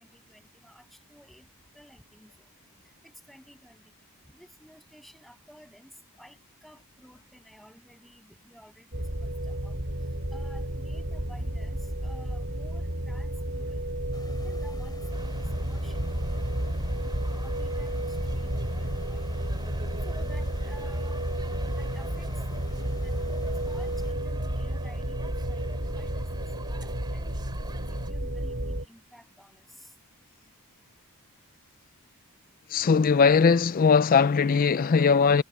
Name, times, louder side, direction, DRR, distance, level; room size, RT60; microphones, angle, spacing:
voice 1, 0.0-1.5 1.7-2.5 3.0-3.9 4.3-9.8 10.3-13.8 14.3-16.4 17.0-19.2 20.0-21.2 21.7-22.3 22.7-23.1 23.6-26.4 26.7-27.4 27.9-29.9, equal, ahead, 7.7 m, -54 dB
sound 1, 8.9-28.8, right 1 dB, 55° right, 6.1 m, -32 dB
sound 2, 14.1-24.1, equal, 20° left, 5.3 m, -42 dB
sound 3, 15.1-28.1, right 2 dB, 20° right, 3.4 m, -47 dB
voice 2, 32.7-35.4, left 5 dB, 40° left, 0.4 m, -20 dB
head